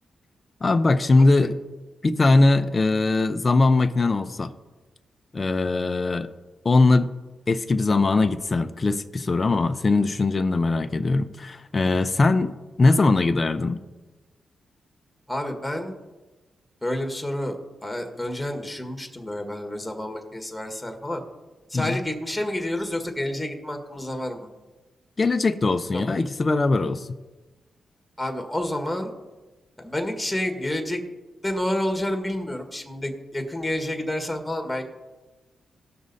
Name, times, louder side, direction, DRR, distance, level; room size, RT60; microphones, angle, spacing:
voice 1, 0.6-1.6 2.0-4.5 5.3-6.3 6.6-7.1 7.5-13.8 21.7-22.0 25.2-27.2, left 3 dB, 35° left, 0.6 m, -21 dB
voice 2, 15.3-15.9 16.8-21.2 21.7-24.5 25.9-26.0 28.2-29.1 29.8-31.0 31.4-34.8, left 1 dB, 5° left, 1.7 m, -29 dB
17.0 x 6.2 x 4.2 m
cardioid pair, 65°, 0 cm